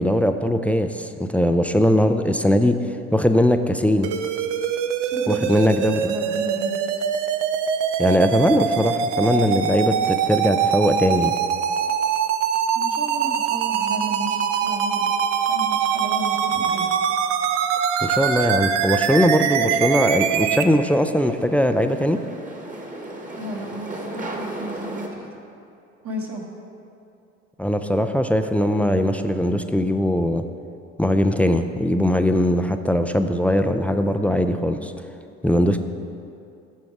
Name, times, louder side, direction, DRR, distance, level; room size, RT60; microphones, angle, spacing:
voice 1, 0.0-2.8 3.1-4.1 5.3-6.1 8.0-11.3 18.0-22.2 27.6-30.4 31.0-34.9 35.4-35.8, equal, 5° left, 8 dB, 0.4 m, -20 dB
sound 1, 4.0-20.6, right 8 dB, 80° right, 0.6 m, -23 dB
voice 2, 5.0-5.5 5.8-6.8 12.7-15.1 15.5-16.9 23.3-25.4 26.0-26.4, right 1 dB, 40° right, -2 dB, 1.4 m, -33 dB
sound 2, 19.6-25.1, right 2 dB, 20° right, 1.4 m, -36 dB
9.6 x 6.3 x 4.7 m, 2.6 s
hypercardioid pair, 65°, 36 cm